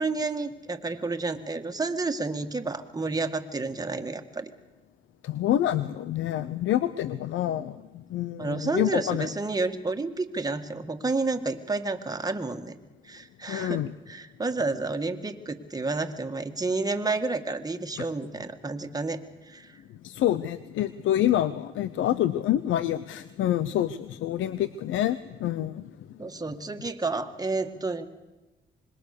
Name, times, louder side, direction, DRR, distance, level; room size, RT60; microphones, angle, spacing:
voice 1, 0.0-4.5 8.4-12.7 13.0-19.8 26.2-28.0, right 3 dB, 20° right, 6 dB, 1.9 m, -30 dB
voice 2, 5.2-7.7 8.1-9.3 13.5-13.9 20.0-25.8, left 12 dB, 80° left, 15 dB, 0.8 m, -27 dB
25.5 x 21.5 x 6.8 m, 1.1 s
cardioid pair, 90°, 20 cm